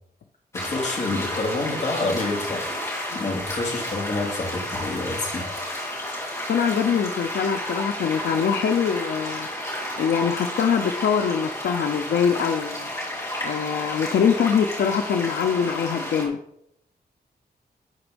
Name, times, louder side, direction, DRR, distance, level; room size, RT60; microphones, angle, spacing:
sound 1, 0.5-16.3, left 1 dB, 15° left, 2.9 m, -31 dB
voice 1, 0.6-2.7 3.1-5.4, left 2 dB, 45° left, 0 dB, 2.6 m, -28 dB
voice 2, 6.5-9.5 10.0-12.9 13.4-16.4, left 7 dB, 85° left, 6 dB, 0.6 m, -23 dB
12.0 x 4.4 x 5.2 m, 0.76 s
wide cardioid pair, 155°, 17 cm